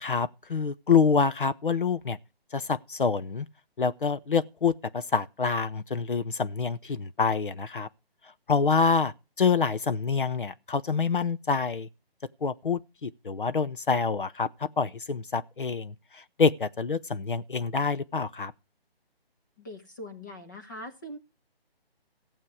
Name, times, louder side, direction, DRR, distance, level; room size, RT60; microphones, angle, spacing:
voice 1, 0.0-2.2 2.5-3.5 3.8-7.9 8.5-9.1 9.4-11.9 12.4-18.5, left 5 dB, 55° left, 0.8 m, -26 dB
voice 2, 19.6-21.2, left 1 dB, 20° left, 1.3 m, -42 dB
15.0 x 7.5 x 4.8 m
hypercardioid pair, 175°, 31 cm